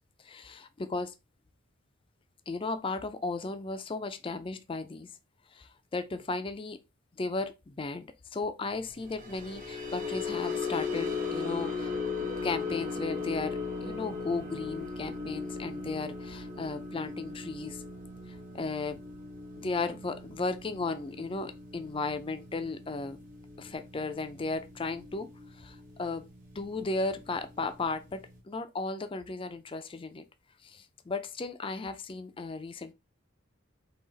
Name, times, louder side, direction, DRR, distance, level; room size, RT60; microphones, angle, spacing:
voice 1, 0.2-1.1 2.5-5.1 5.5-6.8 7.2-11.9 12.2-17.8 18.3-19.0 19.6-23.2 23.6-26.3 26.6-30.2 30.6-32.9, left 3 dB, 25° left, 0.4 m, -35 dB
sound 1, 9.0-25.4 25.8-26.1 26.4-26.6, left 4 dB, 40° right, 1.1 m, -37 dB
3.9 x 2.9 x 3.9 m
head